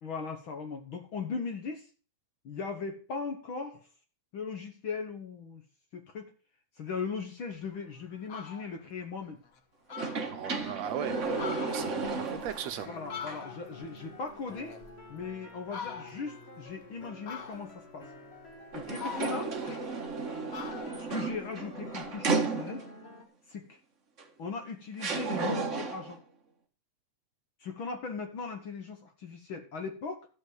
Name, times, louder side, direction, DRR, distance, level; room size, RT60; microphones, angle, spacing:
voice 1, 0.0-1.9 2.4-3.9 4.3-5.6 5.9-6.3 6.8-9.4 11.8-11.9 12.9-14.8 15.1-18.1 18.7-19.6 21.0-22.9 23.5-23.8 24.4-26.2 27.6-30.3, left 5 dB, 55° left, 1.6 m, -38 dB
Fowl, 7.7-7.8 8.1-8.7 9.2-9.3 9.6-9.7 9.9-10.8 11.2-13.9 14.2-15.2 15.7-16.4 17.2-17.9 18.5-20.2 20.5-22.1, left 6 dB, 85° left, 0.7 m, -43 dB
sound 1, 9.9-12.8 13.3-13.4 18.7-23.1 24.2-24.3 25.0-26.2, right 4 dB, 35° right, 1.2 m, -33 dB
voice 2, 10.3-12.9, right 9 dB, 70° right, 1.9 m, -38 dB
sound 2, 11.4-23.2, left 3 dB, 25° left, 1.8 m, -50 dB
13.0 x 5.3 x 7.9 m
omnidirectional pair, 3.5 m